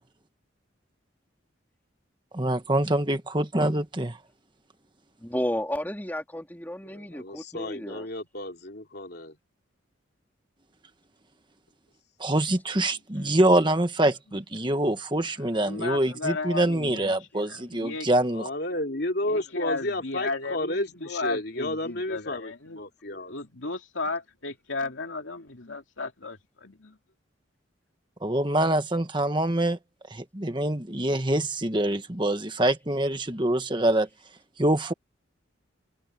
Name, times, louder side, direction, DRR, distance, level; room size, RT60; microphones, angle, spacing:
voice 1, 2.3-4.2 12.2-18.4 28.2-29.8 30.1-34.1 34.6-34.9, right 1 dB, 25° right, 1.5 m, -25 dB
voice 2, 5.2-8.1, equal, 10° left, 3.6 m, -32 dB
voice 3, 6.9-9.3 18.3-23.3, left 1 dB, 55° left, 3.3 m, -32 dB
voice 4, 12.9-13.4 14.7-14.8 15.4-18.1 19.2-22.8 23.3-27.0, left 3 dB, 85° left, 2.6 m, -35 dB
head